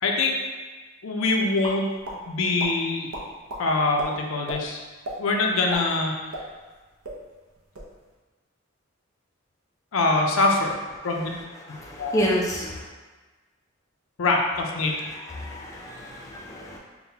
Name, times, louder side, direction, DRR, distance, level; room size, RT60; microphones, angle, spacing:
voice 1, 0.0-0.4 1.0-1.9 2.3-3.1 3.6-4.8 5.2-6.1 9.9-11.3 11.7-12.2 14.2-15.0, left 3 dB, 75° left, 1 dB, 0.5 m, -24 dB
sound 1, 1.6-2.2 2.6-2.7 3.1-3.6 4.0-4.1 4.5-4.6 5.0-5.2 5.5-6.8 7.0-7.2 7.6-7.9, right 1 dB, 85° right, 0.7 m, -34 dB
voice 2, 11.8-12.8 15.4-16.8, equal, 15° left, -4 dB, 0.4 m, -29 dB
5.4 x 2.2 x 2.8 m, 1.3 s
head